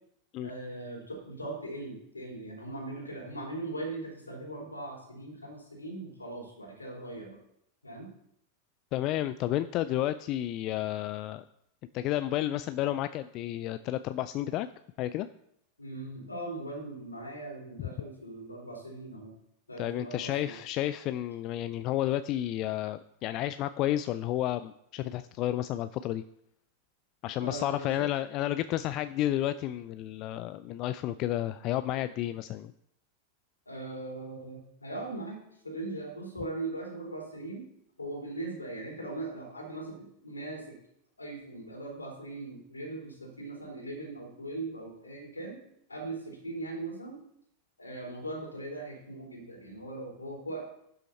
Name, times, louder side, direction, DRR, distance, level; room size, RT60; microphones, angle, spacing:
voice 1, 0.4-7.4 7.8-8.1 15.8-19.3 19.7-20.6 27.4-28.1 33.7-35.4 35.6-37.7 38.0-40.6 41.2-45.6 45.9-47.2 47.8-50.6, right 2 dB, 80° left, -1 dB, 3.7 m, -40 dB
voice 2, 8.9-11.4 11.9-14.7 15.0-15.3 19.8-26.2 27.2-32.7, left 13 dB, 40° left, 12 dB, 0.4 m, -31 dB
11.5 x 6.4 x 4.2 m, 0.72 s
figure-of-eight pair, 90°, 0 cm